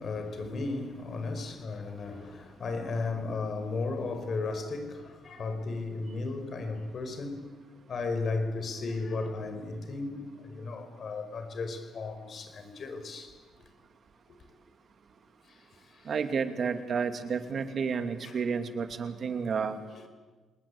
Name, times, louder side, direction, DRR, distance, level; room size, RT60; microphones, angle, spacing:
voice 1, 0.0-7.5 7.9-13.3 15.5-16.1 18.2-18.4 19.9-20.1, left 3 dB, 50° left, 5.2 m, -35 dB
voice 2, 16.0-19.8, right 6 dB, 50° right, 2.7 m, -31 dB
28.0 x 20.5 x 8.8 m
cardioid pair, 90°, 0 cm